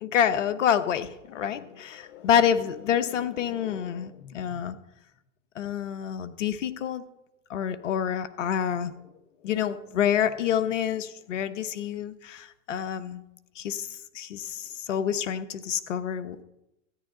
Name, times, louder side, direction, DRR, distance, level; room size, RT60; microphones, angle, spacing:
voice 1, 0.0-4.8 5.6-7.0 7.5-8.9 9.4-13.2 13.6-13.9 14.1-16.4, left 9 dB, 85° left, 13 dB, 0.9 m, -27 dB
13.5 x 9.8 x 3.9 m, 0.86 s
hypercardioid pair, 100°, 36 cm